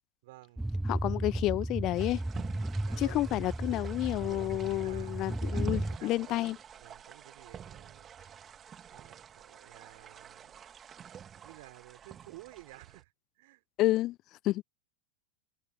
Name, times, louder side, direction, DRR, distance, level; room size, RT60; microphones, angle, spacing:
voice 1, 0.2-0.7 2.8-3.2 4.1-6.5 6.8-8.1 8.9-10.6 11.3-13.6, right 20 dB, 50° right, 5.1 m, -53 dB
sound 1, 0.6-6.0, right 1 dB, 5° right, 0.9 m, -34 dB
voice 2, 0.9-2.2 3.0-6.6 13.8-14.2 14.4-14.6, left 16 dB, 35° left, 0.7 m, -30 dB
sound 2, 1.9-13.0, right 8 dB, 25° right, 3.4 m, -49 dB
figure-of-eight pair, 90°, 0 cm